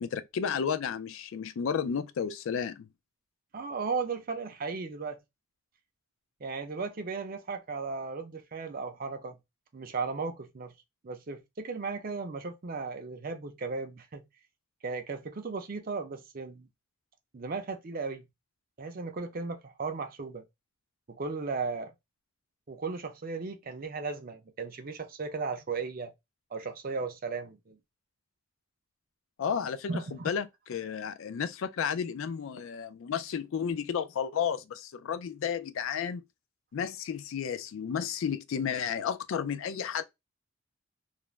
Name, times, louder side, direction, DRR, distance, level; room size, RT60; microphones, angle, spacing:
voice 1, 0.0-2.9 29.4-36.2 36.7-40.0, left 7 dB, 60° left, 0.3 m, -32 dB
voice 2, 3.5-5.2 6.4-9.4 9.7-10.7 11.0-14.3 14.8-16.7 17.3-18.2 18.8-20.4 21.1-21.9 22.7-26.1 26.5-27.8 29.9-30.3, right 4 dB, 40° right, 0.4 m, -36 dB
2.4 x 2.0 x 3.1 m
head